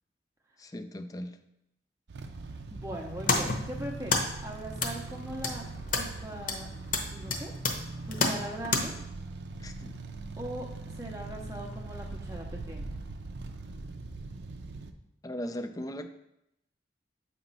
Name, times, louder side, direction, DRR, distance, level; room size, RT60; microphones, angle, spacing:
voice 1, 0.6-1.3 9.6-9.9 15.2-16.1, equal, 20° left, 9 dB, 0.4 m, -38 dB
sound 1, 2.1-14.9, right 3 dB, 65° right, 0.5 m, -41 dB
voice 2, 2.7-5.6 6.0-6.7 7.1-7.5 8.1-8.9 10.4-10.7 10.9-13.0, right 1 dB, 15° right, 0 dB, 0.6 m, -40 dB
sound 2, 2.9-8.8, left 3 dB, 45° left, 0.9 m, -32 dB
7.8 x 3.0 x 5.4 m, 0.83 s
head